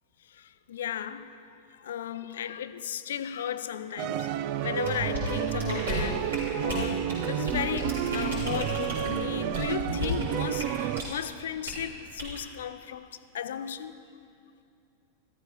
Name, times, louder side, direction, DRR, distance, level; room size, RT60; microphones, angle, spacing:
voice 1, 0.3-13.9, left 9 dB, 60° left, 0.6 m, -35 dB
sound 1, 4.0-11.0, right 11 dB, 45° right, 0.5 m, -30 dB
sound 2, 4.8-11.2 11.6-11.8 12.2-12.4, left 1 dB, 65° right, 4.5 m, -35 dB
14.5 x 13.5 x 5.6 m
figure-of-eight pair, 90°, 0 cm